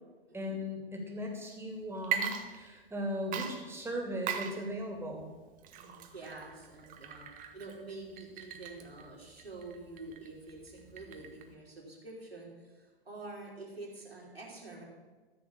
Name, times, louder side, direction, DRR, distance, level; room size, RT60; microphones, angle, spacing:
voice 1, 0.3-5.3, equal, 10° right, 1 dB, 2.7 m, -38 dB
Water / Liquid, 2.0-3.0 3.3-11.5, right 8 dB, 30° right, 1.3 m, -40 dB
voice 2, 5.7-7.3 7.5-14.8, right 2 dB, 80° right, -3 dB, 3.6 m, -47 dB
13.5 x 6.8 x 7.1 m, 1.3 s
figure-of-eight pair, 100°, 29 cm